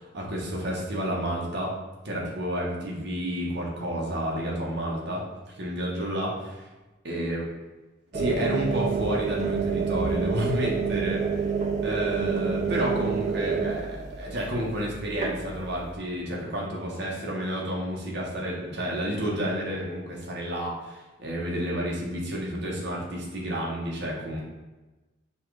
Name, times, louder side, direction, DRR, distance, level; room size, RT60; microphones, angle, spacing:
voice 1, 0.0-1.7 2.0-5.2 5.6-6.7 7.0-7.5 8.1-11.5 11.8-24.4, equal, 60° right, -3 dB, 1.1 m, -30 dB
sound 1, 8.1-16.0, right 5 dB, 35° right, 0.4 m, -28 dB
5.7 x 2.4 x 3.2 m, 1.1 s
head